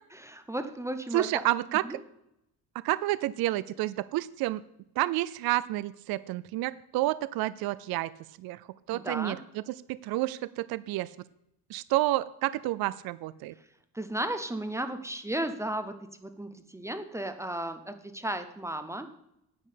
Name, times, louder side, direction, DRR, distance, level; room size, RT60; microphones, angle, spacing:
voice 1, 0.1-1.4 1.8-2.0 8.9-9.4 13.9-19.1, right 1 dB, 5° right, 9 dB, 0.6 m, -34 dB
voice 2, 1.1-2.0 2.8-4.6 5.0-8.1 8.4-11.1 11.7-13.5, right 17 dB, 65° right, 17 dB, 0.5 m, -30 dB
9.7 x 8.6 x 5.0 m, 0.81 s
cardioid pair, 155°, 39 cm